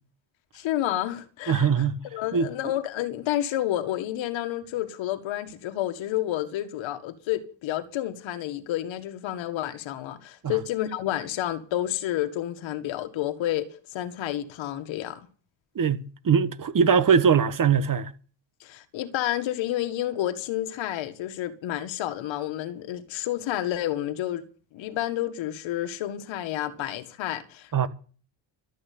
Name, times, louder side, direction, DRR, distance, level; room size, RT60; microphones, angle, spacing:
voice 1, 0.5-1.9 2.1-15.3 18.6-24.4 24.7-27.9, left 13 dB, 85° left, 1.9 m, -30 dB
voice 2, 1.5-2.0 2.3-2.5 15.7-18.1 27.7-27.9, right 6 dB, 45° right, 1.6 m, -21 dB
13.0 x 8.7 x 8.6 m
cardioid pair, 85°, 45 cm